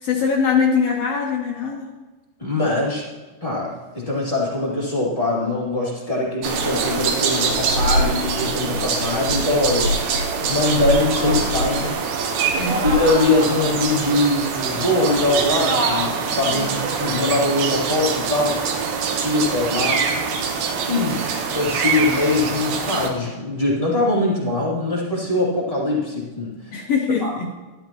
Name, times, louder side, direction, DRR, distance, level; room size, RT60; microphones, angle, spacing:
voice 1, 0.0-1.9 12.6-12.8 16.5-16.7 26.7-27.5, left 5 dB, 85° left, -1 dB, 1.4 m, -22 dB
voice 2, 2.4-3.0 3.4-9.9 10.5-12.0 12.8-18.6 19.2-20.1 20.9-26.8 27.2-27.3, left 2 dB, 15° left, -6 dB, 1.4 m, -22 dB
sound 1, 6.4-23.1, right 4 dB, 80° right, 2.9 m, -24 dB
sound 2, 11.0-20.8, right 2 dB, 55° right, 2.9 m, -31 dB
12.5 x 12.5 x 3.0 m, 1.3 s
omnidirectional pair, 4.3 m